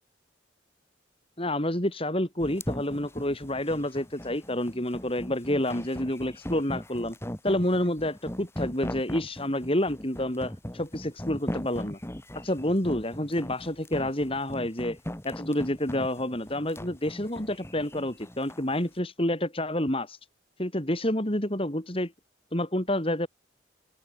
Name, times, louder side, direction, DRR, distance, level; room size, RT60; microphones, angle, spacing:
voice 1, 1.4-7.2 7.4-12.0 12.4-15.0 15.2-20.2 20.6-22.1 22.5-23.3, left 1 dB, 30° left, 4.1 m, -29 dB
sound 1, 2.4-18.7, equal, 15° left, 2.2 m, -39 dB
open air
head